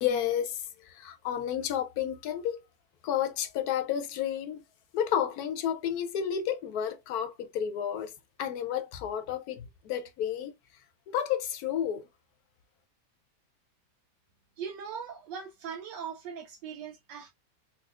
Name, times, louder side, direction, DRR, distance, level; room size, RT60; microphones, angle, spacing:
voice 1, 0.0-2.6 3.0-4.6 4.9-8.1 8.4-10.5 11.1-12.1, left 9 dB, 70° left, 1.0 m, -31 dB
voice 2, 14.6-17.3, right 7 dB, 90° right, 1.3 m, -40 dB
4.1 x 2.3 x 2.3 m
omnidirectional pair, 1.8 m